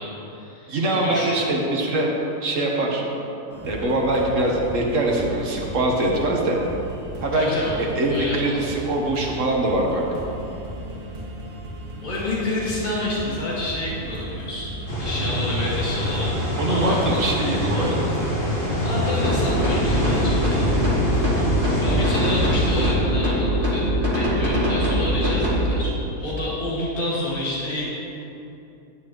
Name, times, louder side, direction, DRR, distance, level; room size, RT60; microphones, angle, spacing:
voice 1, 0.0-1.5 7.3-8.8 12.0-14.7 15.0-18.0 18.8-20.7 21.0-21.5 21.8-25.9 26.2-27.9, left 1 dB, 30° left, -7 dB, 2.1 m, -29 dB
voice 2, 0.7-2.1 2.4-3.0 3.7-6.6 7.2-7.5 8.0-10.0 16.6-18.2, right 1 dB, 55° right, -1 dB, 1.5 m, -23 dB
sound 1, 3.5-22.1, right 1 dB, 70° right, 1.6 m, -36 dB
sound 2, 14.9-22.9, equal, 55° left, 2.4 m, -25 dB
sound 3, 19.2-25.7, equal, 35° right, 1.6 m, -22 dB
10.5 x 9.9 x 3.0 m, 2.9 s
omnidirectional pair, 1.6 m